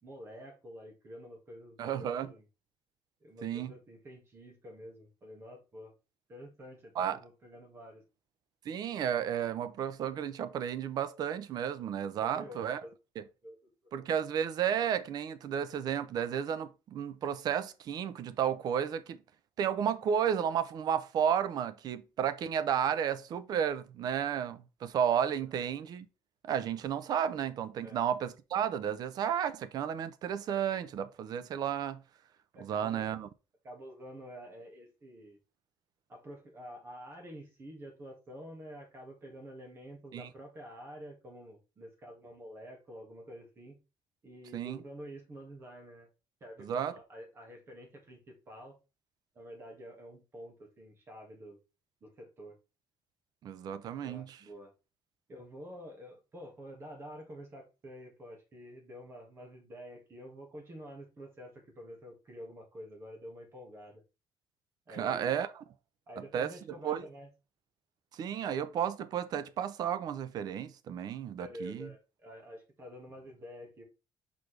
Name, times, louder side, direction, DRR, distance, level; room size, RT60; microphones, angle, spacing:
voice 1, 0.0-2.5 3.2-5.9 6.3-8.0 12.2-12.9 13.4-13.7 27.8-28.0 32.5-33.1 33.6-35.4 36.1-43.8 44.2-46.1 46.4-48.7 49.3-51.6 52.0-52.6 54.0-54.7 55.3-64.0 64.9-65.4 66.1-67.3 71.4-73.8, equal, 25° right, 1.9 m, -48 dB
voice 2, 1.8-2.3 3.4-3.7 7.0-7.2 8.7-12.8 13.9-19.2 19.6-26.1 26.4-32.0 32.6-33.3 40.1-40.3 44.5-44.8 46.6-46.9 53.4-54.4 65.0-65.5 66.3-66.5 66.8-67.0 68.1-71.9, right 8 dB, 45° right, 0.6 m, -32 dB
6.2 x 5.1 x 3.3 m
cardioid pair, 180°, 9 cm